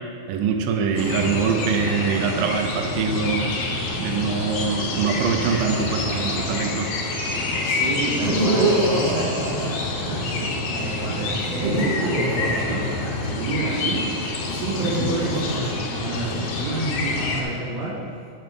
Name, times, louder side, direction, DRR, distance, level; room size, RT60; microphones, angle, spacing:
voice 1, 0.3-3.5 4.0-6.9, right 6 dB, 85° right, 5 dB, 2.3 m, -24 dB
Laughter, 0.8-3.4 4.7-7.1 7.9-10.5 11.3-13.7 14.6-16.5, right 1 dB, 70° right, 1.4 m, -27 dB
sound 1, 0.9-17.4, left 3 dB, 75° left, 1.4 m, -27 dB
voice 2, 7.6-17.9, right 2 dB, 50° right, -11 dB, 3.1 m, -29 dB
7.8 x 4.0 x 6.8 m, 2.2 s
omnidirectional pair, 3.9 m